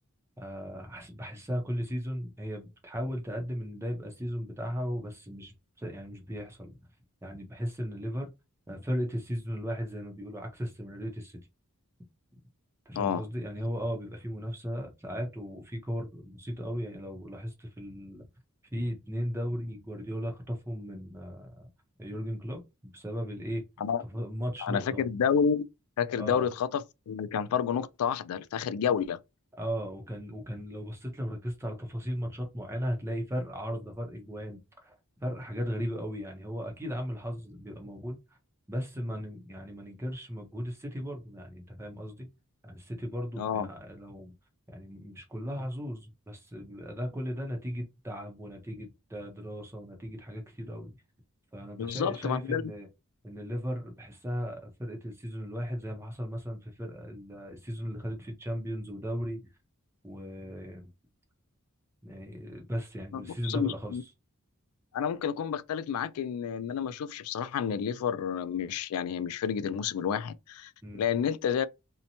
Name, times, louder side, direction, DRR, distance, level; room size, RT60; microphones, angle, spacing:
voice 1, 0.4-6.8 7.2-8.3 8.7-11.5 12.9-18.3 18.7-21.6 22.0-23.6 24.1-25.0 26.2-26.4 29.6-34.9 35.2-38.2 38.7-42.3 42.6-44.3 44.7-51.0 51.5-52.9 53.2-59.4 60.0-60.9 62.0-64.0 70.8-71.0, equal, 10° right, 0.6 m, -36 dB
voice 2, 24.6-25.6 26.0-29.2 43.4-43.7 51.8-52.7 63.1-64.0 64.9-71.7, left 7 dB, 85° left, 0.3 m, -30 dB
2.8 x 2.1 x 2.6 m
head